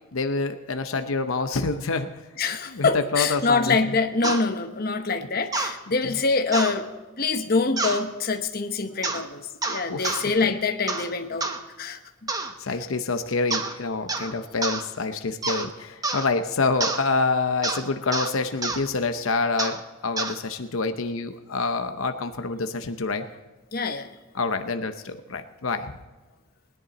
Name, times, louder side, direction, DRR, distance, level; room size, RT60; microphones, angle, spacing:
voice 1, 0.1-2.1 2.7-3.8 6.0-6.1 8.9-9.3 9.9-10.6 12.6-23.3 24.3-25.9, left 3 dB, 80° left, 8 dB, 0.8 m, -27 dB
voice 2, 2.4-6.9 7.2-11.5 11.8-12.0 23.7-24.1, left 4 dB, 45° left, 5 dB, 0.9 m, -25 dB
sound 1, 4.2-4.4 5.5-5.7 6.5-6.8 7.8-8.0 9.0-9.2 9.6-10.2 10.9-11.1 11.4-11.6 12.3-12.5 13.5-13.8 14.1-14.3 14.6-14.8 15.4-15.7 16.0-16.3 16.8-17.0 17.6-17.8 18.1-18.3 18.6-18.8 19.6-19.8 20.2-20.4, right 3 dB, 15° right, 0.9 m, -28 dB
20.0 x 10.5 x 4.2 m, 1.2 s
head